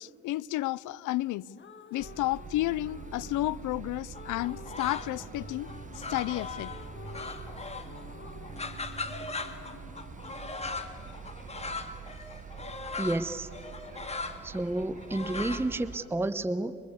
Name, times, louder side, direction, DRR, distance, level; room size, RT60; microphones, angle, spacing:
voice 1, 0.0-1.5 1.9-6.7 7.2-7.4, left 16 dB, 80° left, 0.5 m, -32 dB
sound 1, 1.2-12.3, left 5 dB, 40° left, 1.8 m, -50 dB
sound 2, 2.0-16.0, right 6 dB, 25° right, 1.1 m, -45 dB
sound 3, 4.1-5.3 5.6-8.0 8.3-16.0, left 3 dB, 20° left, 2.0 m, -39 dB
voice 2, 13.0-13.5 14.4-16.8, right 2 dB, 10° right, 0.7 m, -30 dB
24.0 x 23.0 x 8.4 m
cardioid pair, 90°, 30 cm